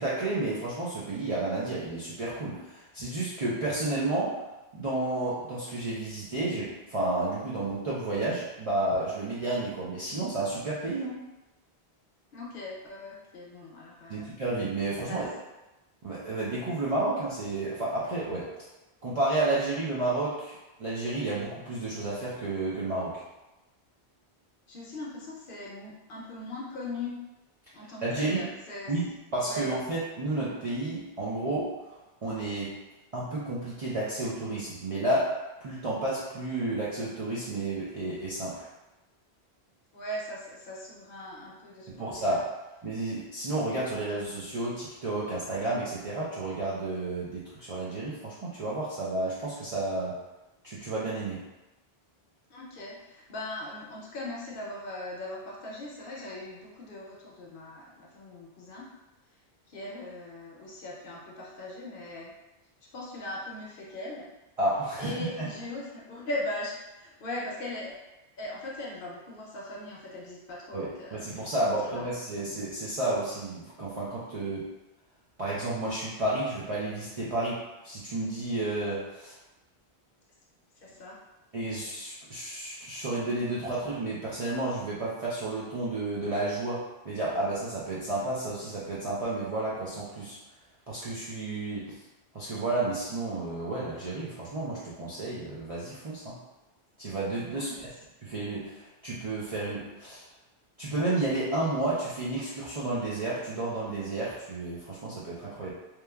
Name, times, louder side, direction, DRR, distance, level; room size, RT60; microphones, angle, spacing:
voice 1, 0.0-4.4 4.7-11.2 14.1-15.3 16.0-18.5 19.0-23.2 28.0-28.5 28.9-32.8 33.1-38.7 41.9-42.4 42.8-50.2 50.6-51.4 64.6-65.5 70.7-74.7 75.4-79.3 81.5-90.4 90.9-92.0 92.3-96.4 97.0-97.7 98.2-100.2 100.8-105.7, right 2 dB, 55° right, -8 dB, 0.4 m, -31 dB
voice 2, 12.3-14.3 15.1-15.2 24.7-27.1 27.7-28.9 29.4-29.7 39.9-42.4 52.5-58.9 59.7-62.3 62.9-64.3 65.0-68.0 68.4-71.2 71.6-72.2 80.8-81.1 97.5-97.8, left 1 dB, 60° left, -3 dB, 0.7 m, -39 dB
3.0 x 2.2 x 2.2 m, 1.0 s
omnidirectional pair, 1.1 m